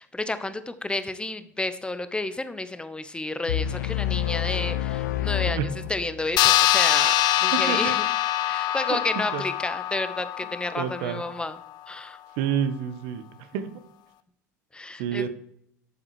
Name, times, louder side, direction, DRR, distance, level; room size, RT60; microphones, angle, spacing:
voice 1, 0.0-5.6 5.9-7.1 7.4-8.0 8.5-11.5 11.9-12.2 14.7-15.3, left 2 dB, 10° left, 12 dB, 0.9 m, -31 dB
sound 1, 3.5-6.4, left 11 dB, 75° left, 0.4 m, -28 dB
sound 2, 6.4-11.2, left 13 dB, 50° left, 0.7 m, -24 dB
voice 2, 7.7-8.0 8.9-9.4 10.8-11.2 12.4-13.7 15.0-15.3, right 8 dB, 60° right, 10 dB, 1.1 m, -29 dB
12.0 x 7.4 x 3.1 m, 0.71 s
hypercardioid pair, 75°, 9 cm